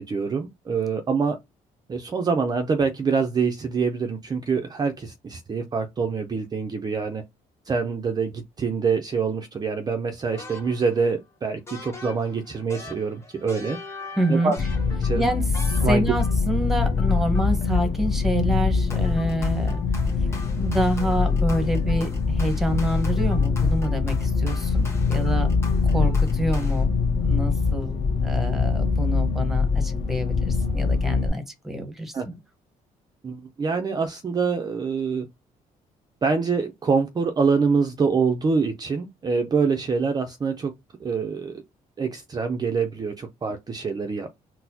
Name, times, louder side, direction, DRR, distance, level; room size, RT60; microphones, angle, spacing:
voice 1, 0.0-1.4 1.9-7.2 7.7-13.8 14.3-14.6 15.0-15.3 15.8-16.0 25.9-26.0 32.1-32.3 33.2-35.3 36.2-40.7 41.0-41.6 42.0-44.3, right 5 dB, 30° right, 0.5 m, -25 dB
sound 1, 10.3-11.1 11.7-16.5 16.8-18.1 18.9-26.8, left 3 dB, 20° left, 1.2 m, -42 dB
voice 2, 14.2-14.5 15.2-15.4 15.8-19.8 20.6-25.5 25.9-26.9 27.2-32.3, right 1 dB, ahead, 1.0 m, -27 dB
sound 2, 14.6-31.3, left 4 dB, 40° left, 0.8 m, -23 dB
4.1 x 2.0 x 2.7 m
cardioid pair, 100°, 15 cm